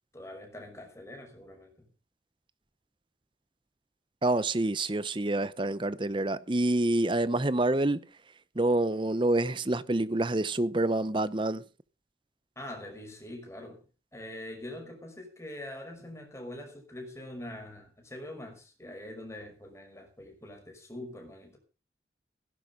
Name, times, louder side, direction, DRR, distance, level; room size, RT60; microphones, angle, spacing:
voice 1, 0.1-1.9 12.6-13.8 14.1-21.6, left 1 dB, 15° left, 5.7 m, -44 dB
voice 2, 4.2-8.0 8.6-11.6, right 2 dB, 30° right, 0.8 m, -27 dB
16.5 x 11.5 x 5.3 m
head